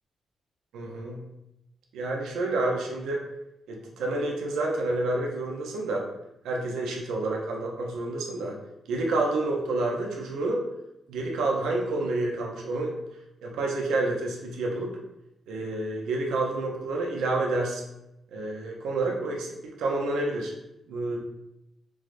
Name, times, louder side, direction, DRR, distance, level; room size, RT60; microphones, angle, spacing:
voice 1, 0.7-1.2 1.9-3.2 3.7-6.1 6.4-8.6 8.9-10.6 11.1-12.9 13.4-14.9 15.5-17.8 18.3-20.5 20.9-21.2, right 2 dB, 90° right, -1 dB, 0.5 m, -29 dB
4.6 x 2.0 x 2.4 m, 0.87 s
cardioid pair, 70°, 0 cm